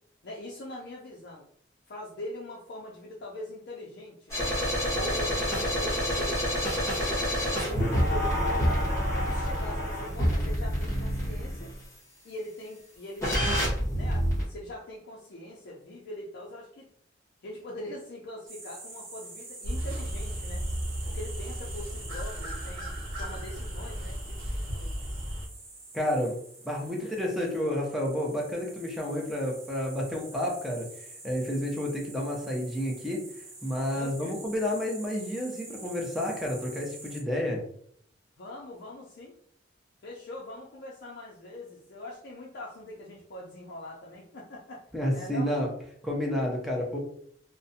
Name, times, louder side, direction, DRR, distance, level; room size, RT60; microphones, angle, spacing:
voice 1, 0.2-1.5 1.9-4.6 4.9-7.2 7.6-8.8 9.1-11.7 12.2-16.9 17.4-20.6 21.0-25.0 27.0-27.2 33.9-34.4 38.4-39.4 40.0-44.8 45.1-45.5, left 1 dB, 55° left, -4 dB, 0.4 m, -42 dB
sound 1, 4.3-11.7 13.2-14.4, equal, 15° left, 0.9 m, -27 dB
sound 2, 18.5-37.2, right 2 dB, 30° right, 0.8 m, -46 dB
sound 3, 19.6-25.5, equal, 90° right, 0.8 m, -35 dB
voice 2, 25.9-26.4 26.6-37.6 44.9-45.7 46.0-47.0, left 1 dB, ahead, -2 dB, 0.5 m, -30 dB
2.5 x 2.1 x 2.6 m, 0.64 s
head